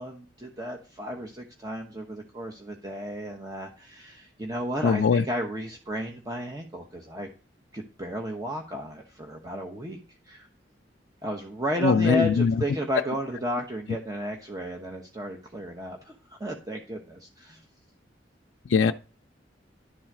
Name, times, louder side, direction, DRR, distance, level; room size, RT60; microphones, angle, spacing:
voice 1, 0.0-7.3 7.7-10.0 10.3-10.5 11.2-17.6, equal, 20° right, 1.0 m, -33 dB
voice 2, 4.8-5.2 11.8-12.6 18.7-18.9, left 5 dB, 85° left, 0.4 m, -21 dB
11.0 x 4.0 x 6.0 m
head